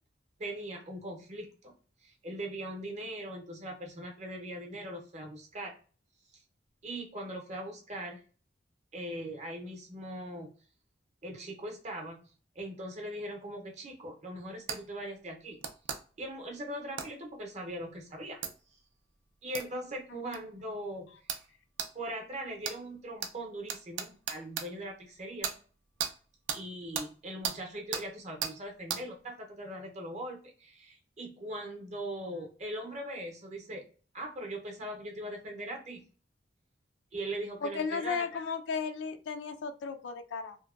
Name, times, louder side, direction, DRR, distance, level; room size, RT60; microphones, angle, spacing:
voice 1, 0.4-1.7 2.0-5.7 6.8-8.2 8.9-10.5 11.2-12.2 12.5-15.6 16.2-18.4 19.4-21.1 21.9-25.5 26.5-33.8 34.1-36.1 37.1-38.3, right 1 dB, 40° right, 2 dB, 0.6 m, -40 dB
sound 1, 14.7-14.8 15.6-16.0 17.0-17.1 18.4-18.5 19.5-19.7 20.3-20.4 21.3-21.4 21.8-21.9 22.6-22.8 23.2-23.3 23.7-24.7 25.4-25.6 26.0-26.1 26.5-26.6 26.9-27.1 27.4-27.6 27.9-28.0 28.4-28.5 28.9-29.0, right 8 dB, 85° right, 0.4 m, -34 dB
voice 2, 37.6-40.6, left 5 dB, 75° left, 9 dB, 0.4 m, -35 dB
2.8 x 2.1 x 2.3 m, 0.39 s
head